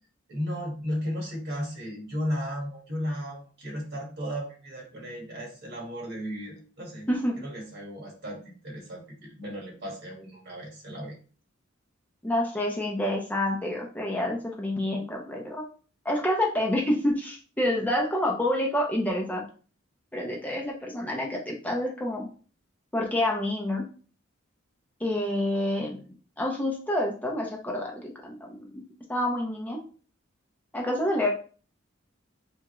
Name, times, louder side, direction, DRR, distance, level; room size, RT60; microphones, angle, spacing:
voice 1, 0.3-7.1 7.4-11.2, equal, 55° right, 0 dB, 1.5 m, -35 dB
voice 2, 12.2-15.6 16.0-19.4 20.1-22.3 22.9-23.8 25.0-26.0 26.4-28.8 29.1-29.8 30.7-31.3, left 1 dB, 10° left, -1 dB, 0.7 m, -28 dB
3.5 x 3.5 x 3.1 m, 0.39 s
head